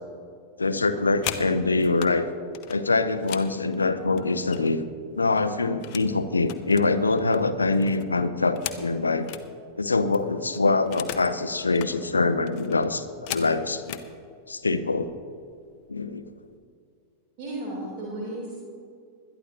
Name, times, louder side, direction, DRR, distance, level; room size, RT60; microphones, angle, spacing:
voice 1, 0.6-2.3 2.7-4.8 5.2-9.4 9.8-14.0 14.5-15.1 15.9-16.3, left 3 dB, 80° left, 11 dB, 0.7 m, -24 dB
sound 1, 0.9-2.1 2.5-4.9 5.2-6.1 6.4-9.5 9.8-9.9 10.1-11.3 11.6-11.9 12.5-14.1 14.9-15.1 15.4-15.8 16.1-16.6, left 11 dB, 45° left, 0.8 m, -38 dB
voice 2, 17.4-18.6, right 1 dB, 45° right, -5 dB, 3.4 m, -34 dB
21.0 x 12.5 x 2.9 m, 2.3 s
figure-of-eight pair, 90°, 0 cm